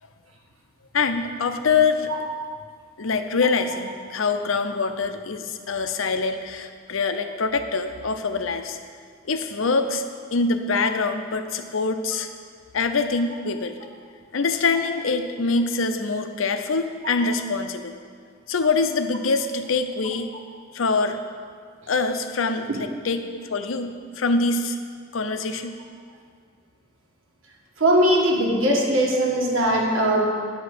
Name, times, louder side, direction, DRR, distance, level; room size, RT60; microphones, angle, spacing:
voice 1, 0.9-2.1 3.0-8.8 9.3-10.0 10.3-12.3 12.7-13.8 14.3-18.0 18.5-20.3 20.7-21.2 21.9-24.8 25.1-25.8, left 4 dB, 80° left, 8 dB, 0.6 m, -24 dB
voice 2, 27.8-30.2, right 1 dB, 80° right, -1 dB, 1.6 m, -20 dB
9.6 x 5.0 x 6.6 m, 2.1 s
head